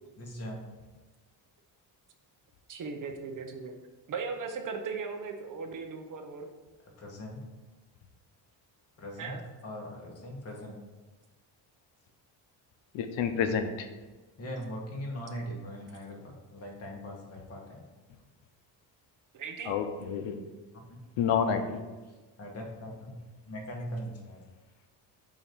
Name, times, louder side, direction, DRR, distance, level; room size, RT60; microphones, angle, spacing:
voice 1, 0.2-0.7 6.8-7.4 9.0-10.8 14.4-17.8 21.4-21.6 22.0-23.1 23.5-24.4, equal, 35° left, -1 dB, 1.5 m, -41 dB
voice 2, 2.7-3.7 4.1-6.5 9.2-9.4 19.3-19.8, right 5 dB, 45° right, 5 dB, 0.7 m, -37 dB
voice 3, 12.9-13.9 19.7-20.4 21.2-21.8, left 7 dB, 85° left, 7 dB, 0.7 m, -29 dB
7.1 x 2.9 x 5.1 m, 1.2 s
cardioid pair, 125°, 44 cm